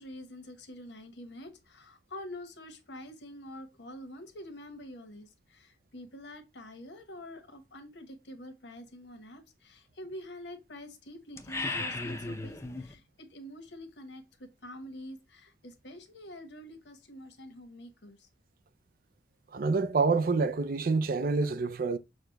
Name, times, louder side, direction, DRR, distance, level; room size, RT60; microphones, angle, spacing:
voice 1, 0.0-18.3, left 1 dB, 90° left, 1.1 m, -46 dB
sound 1, 11.4-12.9, left 2 dB, 15° left, 0.5 m, -35 dB
voice 2, 19.5-22.0, right 4 dB, 55° right, 0.4 m, -27 dB
6.3 x 2.2 x 3.8 m
head